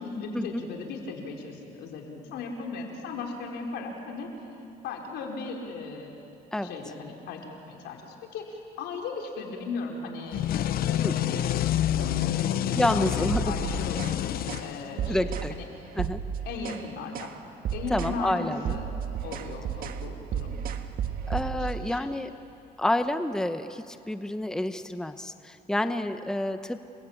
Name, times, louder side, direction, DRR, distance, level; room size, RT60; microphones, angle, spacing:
voice 1, 0.0-4.3 4.8-6.2 6.6-15.6 16.4-17.3 17.7-18.8 19.2-20.5 21.4-22.1, left 4 dB, 80° left, 1 dB, 4.6 m, -37 dB
sound 1, 10.3-15.2, left 11 dB, 60° left, 0.9 m, -28 dB
voice 2, 12.7-13.6 15.1-15.6 15.9-16.2 17.9-18.8 21.3-22.3 22.8-26.8, left 1 dB, 5° left, 9 dB, 0.9 m, -29 dB
sound 2, 13.2-14.2 14.5-14.7 15.0-15.5 15.9-16.9 17.1-17.4 17.6-18.2 18.5-21.8, right 8 dB, 60° right, 1.6 m, -33 dB
29.5 x 22.5 x 8.8 m, 2.8 s
cardioid pair, 110°, 17 cm